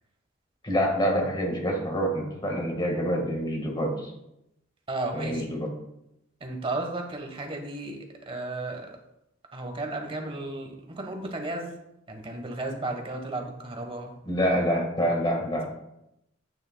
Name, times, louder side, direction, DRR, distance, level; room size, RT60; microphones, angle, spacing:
voice 1, 0.6-3.9 5.1-5.7 14.2-15.6, equal, 25° left, 1 dB, 1.5 m, -26 dB
voice 2, 4.9-5.4 6.4-8.0 8.3-8.9 9.5-11.7 12.1-14.2, right 2 dB, 30° right, 3 dB, 1.1 m, -34 dB
9.0 x 8.6 x 2.2 m, 0.84 s
head